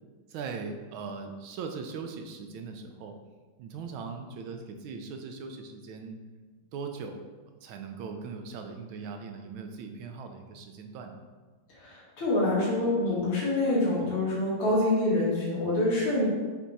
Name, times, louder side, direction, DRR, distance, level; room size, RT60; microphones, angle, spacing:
voice 1, 0.3-3.2 3.6-6.2 6.7-7.2 7.6-11.2, right 5 dB, 75° right, 5 dB, 1.4 m, -39 dB
voice 2, 11.8-16.2, left 2 dB, 80° left, -7 dB, 2.7 m, -26 dB
7.4 x 3.4 x 4.1 m, 1.4 s
omnidirectional pair, 2.4 m